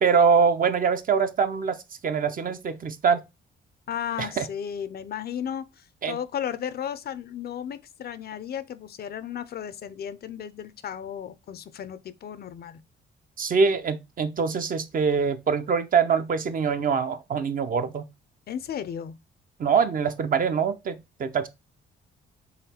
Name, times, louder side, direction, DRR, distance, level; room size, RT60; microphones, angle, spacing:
voice 1, 0.0-3.2 4.2-4.5 6.0-6.2 13.4-18.1 19.6-21.5, right 6 dB, 45° right, 0.7 m, -24 dB
voice 2, 3.9-12.8 18.5-19.2, left 9 dB, 50° left, 0.5 m, -34 dB
4.0 x 3.1 x 4.2 m
cardioid pair, 90°, 20 cm